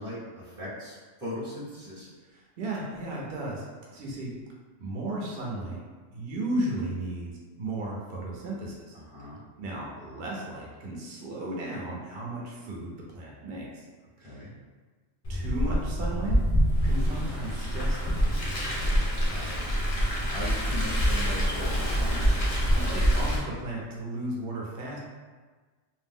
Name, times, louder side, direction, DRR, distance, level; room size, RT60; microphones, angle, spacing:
voice 1, 0.0-2.1 8.9-9.5 14.2-14.6 18.7-19.0 19.3-19.8 20.2-22.2, left 1 dB, 5° right, -12 dB, 0.6 m, -39 dB
voice 2, 2.6-3.7 3.9-4.3 4.8-5.8 6.1-9.0 9.6-13.9 14.2-14.4 15.3-16.4 16.8-18.3 22.5-25.0, right 1 dB, 55° right, -3 dB, 0.8 m, -35 dB
Car, 15.2-23.4, equal, 65° left, 0.3 m, -26 dB
2.6 x 2.0 x 3.5 m, 1.4 s
omnidirectional pair, 1.3 m